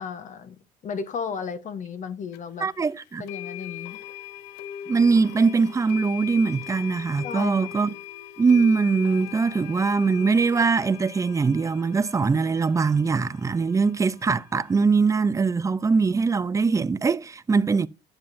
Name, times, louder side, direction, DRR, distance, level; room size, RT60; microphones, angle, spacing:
voice 1, 0.0-2.7 3.2-4.0 7.2-7.7, left 6 dB, 50° left, 1.0 m, -34 dB
sound 1, 2.3-2.4 3.3-14.9, left 11 dB, 85° left, 0.6 m, -40 dB
voice 2, 2.6-3.3 4.9-7.9 8.4-17.9, right 4 dB, 20° right, 0.4 m, -22 dB
11.0 x 7.3 x 2.6 m
cardioid pair, 110°, 17 cm